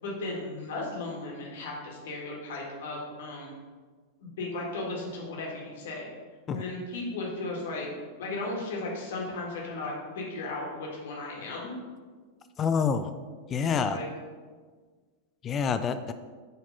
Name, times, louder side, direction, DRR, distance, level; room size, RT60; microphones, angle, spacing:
voice 1, 0.0-3.5 4.2-6.1 6.5-7.9 8.2-11.7 13.6-14.1, left 2 dB, 55° left, -2 dB, 1.9 m, -36 dB
voice 2, 12.6-13.1 13.5-14.0 15.4-16.1, left 6 dB, 25° left, 10 dB, 0.4 m, -27 dB
7.0 x 4.2 x 5.5 m, 1.5 s
figure-of-eight pair, 90°, 0 cm